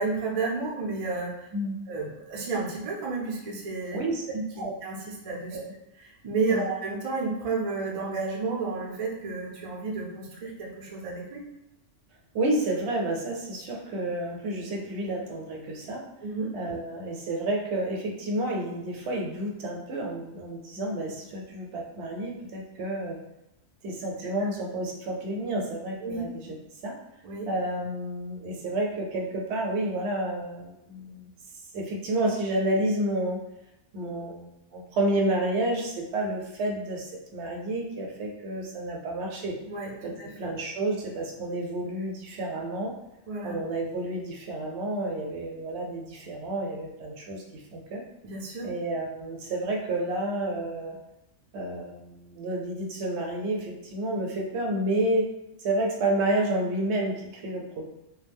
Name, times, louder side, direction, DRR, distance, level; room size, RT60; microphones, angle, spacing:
voice 1, 0.0-1.3 1.9-4.0 4.3-5.6 6.0-11.4 16.2-16.5 24.4-24.5 26.0-26.3 27.2-27.5 39.7-39.9 40.2-40.5 43.3-43.6 48.2-48.7, right 3 dB, 50° right, -2 dB, 0.4 m, -31 dB
voice 2, 3.9-4.2 4.6-4.7 5.5-5.7 6.5-6.7 12.3-16.0 16.5-23.2 23.8-26.6 26.8-26.9 27.5-31.3 31.7-33.4 33.9-39.6 40.0-42.9 43.4-48.0 48.6-51.0 51.5-55.3 55.6-57.9, right 1 dB, 70° right, 0 dB, 0.8 m, -30 dB
2.3 x 2.1 x 3.3 m, 0.90 s
omnidirectional pair, 1.2 m